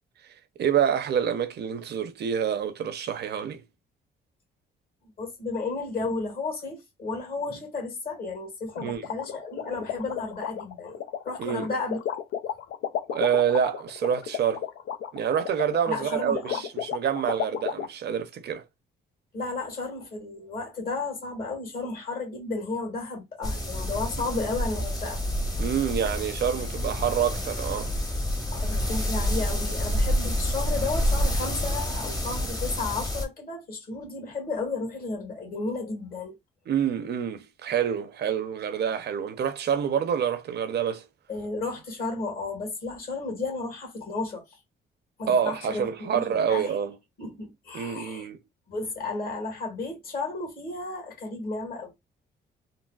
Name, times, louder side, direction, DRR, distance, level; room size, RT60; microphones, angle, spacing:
voice 1, 0.6-3.6 8.8-9.1 11.4-11.7 13.1-14.6 15.1-18.6 25.6-27.9 36.7-41.0 45.3-46.9 47.7-48.4, right 8 dB, 55° right, 0.6 m, -27 dB
voice 2, 5.2-12.0 15.9-16.6 19.3-25.2 28.5-36.3 41.3-44.6 45.2-46.7 47.2-48.3 48.7-51.9, left 3 dB, 50° left, 1.6 m, -33 dB
sound 1, 8.7-17.9, left 9 dB, 80° left, 0.4 m, -32 dB
sound 2, 23.4-33.3, equal, 20° left, 0.9 m, -28 dB
3.9 x 2.0 x 2.3 m
cardioid pair, 90°, 20 cm